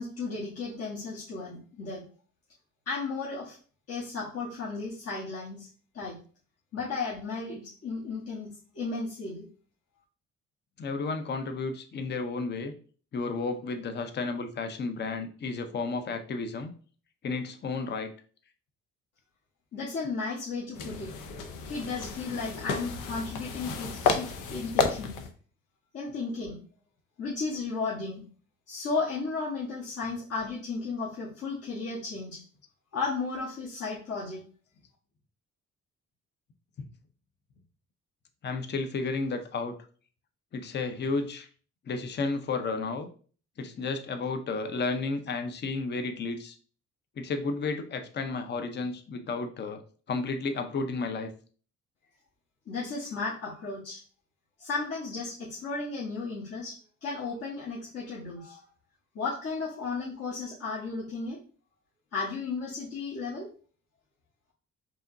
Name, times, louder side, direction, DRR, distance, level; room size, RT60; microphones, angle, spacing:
voice 1, 0.0-2.0 2.9-3.6 3.9-5.7 5.9-6.2 6.7-9.5 19.7-21.1 21.6-25.2 25.9-26.6 27.2-28.3 28.7-32.4 32.9-34.5 52.7-54.0 54.6-58.6 59.1-61.4 62.1-63.5, left 4 dB, 50° left, -7 dB, 1.2 m, -34 dB
voice 2, 10.8-12.7 13.1-16.7 17.2-18.1 38.4-39.7 40.5-41.5 41.9-43.1 43.6-46.6 47.2-49.8 50.1-51.3, left 3 dB, 35° left, 7 dB, 0.6 m, -32 dB
sound 1, 20.7-25.3, left 5 dB, 85° left, 0.6 m, -31 dB
4.8 x 2.9 x 2.6 m, 0.41 s
cardioid pair, 90°, 30 cm